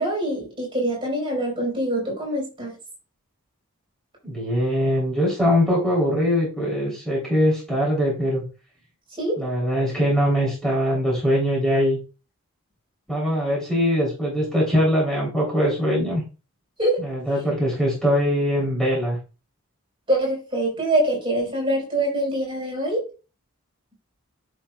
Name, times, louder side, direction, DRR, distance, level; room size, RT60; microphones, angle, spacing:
voice 1, 0.0-2.7 9.2-9.4 16.8-17.0 20.1-23.0, right 1 dB, 25° right, -1 dB, 4.3 m, -24 dB
voice 2, 4.2-8.4 9.3-12.0 13.1-16.2 17.0-19.2, equal, ahead, -4 dB, 3.3 m, -22 dB
11.0 x 6.2 x 2.3 m, 0.32 s
head